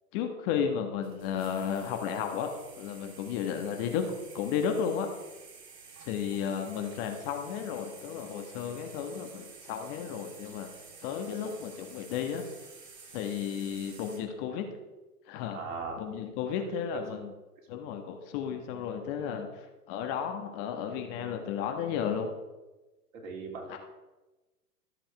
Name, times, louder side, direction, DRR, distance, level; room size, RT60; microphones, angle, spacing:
voice 1, 0.1-2.5 2.8-4.1 4.3-5.1 6.0-10.7 11.0-12.4 13.1-14.7 15.3-15.6 16.0-17.3 17.7-19.5 19.9-22.3, left 8 dB, 35° left, 5 dB, 1.5 m, -33 dB
sound 1, 1.0-14.2, right 4 dB, 75° right, 3.2 m, -51 dB
voice 2, 15.5-16.0 16.6-16.8 23.1-23.8, right 4 dB, 55° right, 1 dB, 3.2 m, -39 dB
13.5 x 7.5 x 4.7 m, 1.1 s
hypercardioid pair, 115°, 48 cm